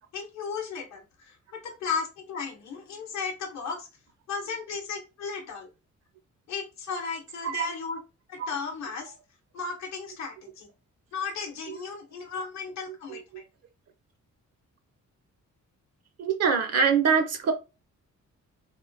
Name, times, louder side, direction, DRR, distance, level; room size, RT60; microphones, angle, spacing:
voice 1, 0.1-3.9 4.3-5.7 6.5-8.0 8.3-9.1 9.5-10.7 11.1-13.5, left 5 dB, 60° left, 0.8 m, -35 dB
voice 2, 13.1-13.4 16.2-17.5, right 6 dB, 55° right, 0.5 m, -24 dB
3.6 x 2.2 x 2.5 m
wide cardioid pair, 135°, 30 cm